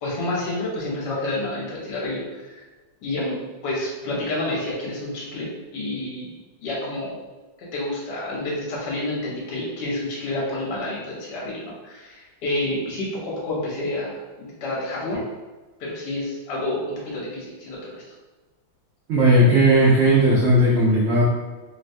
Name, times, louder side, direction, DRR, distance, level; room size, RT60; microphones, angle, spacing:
voice 1, 0.0-2.6 3.0-6.4 6.6-7.2 7.6-15.2 15.8-18.0, left 1 dB, 65° left, -5 dB, 1.3 m, -29 dB
voice 2, 19.1-21.2, right 1 dB, 90° right, -7 dB, 0.6 m, -16 dB
3.2 x 2.2 x 2.6 m, 1.2 s
omnidirectional pair, 2.2 m